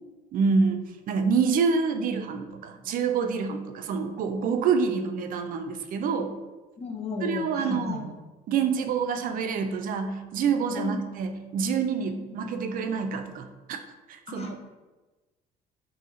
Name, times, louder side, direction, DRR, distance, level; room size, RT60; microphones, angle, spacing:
voice 1, 0.3-6.3 7.2-8.1 8.5-13.8 14.1-14.6, right 5 dB, 55° right, 7 dB, 0.4 m, -27 dB
voice 2, 6.8-8.0 10.7-11.1 12.0-12.4 14.3-14.6, left 4 dB, 35° left, 3 dB, 0.6 m, -35 dB
2.8 x 2.7 x 3.7 m, 1.2 s
cardioid pair, 110°, 17 cm